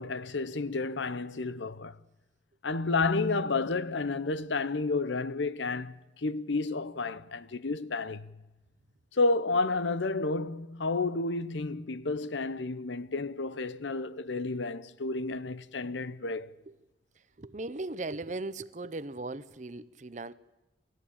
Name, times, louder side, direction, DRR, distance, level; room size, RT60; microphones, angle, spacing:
voice 1, 0.0-2.0 2.6-8.3 9.1-16.5, left 3 dB, 80° left, 0.9 m, -31 dB
voice 2, 17.4-20.3, right 2 dB, 40° right, 0.7 m, -38 dB
28.5 x 14.0 x 8.7 m
head